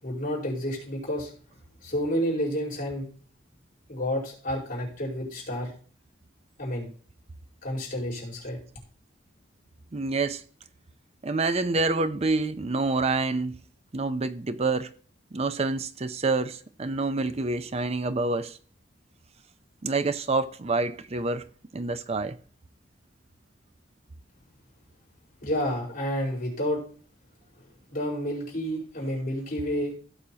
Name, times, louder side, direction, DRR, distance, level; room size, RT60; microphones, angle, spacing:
voice 1, 0.0-1.3 1.8-3.1 3.9-5.7 6.6-6.9 7.6-8.6 25.4-26.8 27.6-29.9, equal, 45° left, 4.7 m, -30 dB
voice 2, 9.9-10.4 11.2-13.6 13.9-14.9 15.3-18.6 19.8-21.4 21.7-22.4, right 3 dB, 35° right, 0.5 m, -27 dB
16.5 x 6.5 x 2.8 m
head